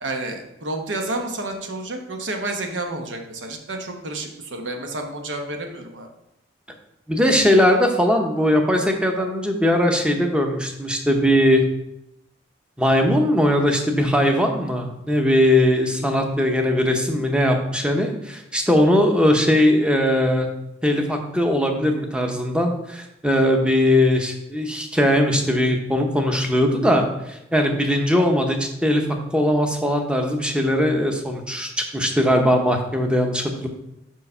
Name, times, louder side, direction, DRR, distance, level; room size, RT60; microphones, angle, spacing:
voice 1, 0.0-6.1, right 2 dB, 80° right, 4 dB, 1.0 m, -30 dB
voice 2, 7.1-11.6 12.8-20.5 20.8-29.0 29.3-33.7, left 1 dB, 5° right, 3 dB, 0.7 m, -20 dB
4.9 x 4.6 x 5.4 m, 0.87 s
head